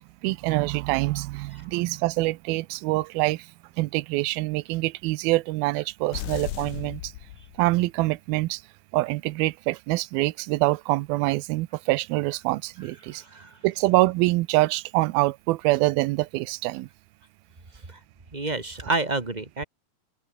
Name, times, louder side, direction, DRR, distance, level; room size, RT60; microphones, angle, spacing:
voice 1, 0.2-3.5 3.8-7.1 7.6-8.6 8.9-13.2 13.6-16.9, right 20 dB, 80° right, 2.5 m, -25 dB
sound 1, 6.1-8.0, left 14 dB, 70° left, 2.5 m, -36 dB
voice 2, 13.1-13.5 17.9-18.0 18.3-19.6, right 2 dB, 35° right, 0.7 m, -29 dB
omnidirectional pair, 4.3 m